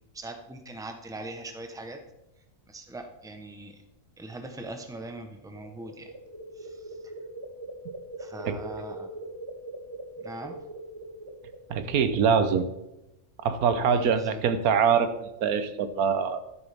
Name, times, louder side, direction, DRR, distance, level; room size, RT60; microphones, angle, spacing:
voice 1, 0.1-2.0 2.7-3.8 4.2-6.1 6.6-7.1 8.2-9.1 10.2-10.6 13.8-14.4, right 2 dB, 5° right, 6 dB, 0.6 m, -41 dB
sound 1, 5.4-12.1, right 1 dB, 20° right, 1.2 m, -41 dB
voice 2, 11.7-12.7 13.4-16.4, right 6 dB, 90° right, 11 dB, 1.3 m, -24 dB
11.0 x 9.9 x 3.4 m, 0.92 s
omnidirectional pair, 1.5 m